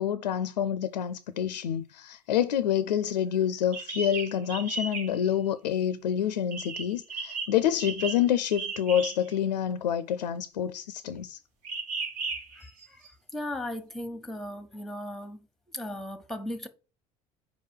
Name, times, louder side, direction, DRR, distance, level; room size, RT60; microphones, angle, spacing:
voice 1, 0.0-11.4, left 10 dB, 90° left, 0.4 m, -27 dB
sound 1, 3.7-5.2 6.5-9.4 11.6-13.1, right 4 dB, 80° right, 1.4 m, -36 dB
voice 2, 12.5-15.5 15.7-16.7, left 1 dB, ahead, 1.1 m, -37 dB
5.2 x 4.8 x 6.3 m
hypercardioid pair, 65°, 21 cm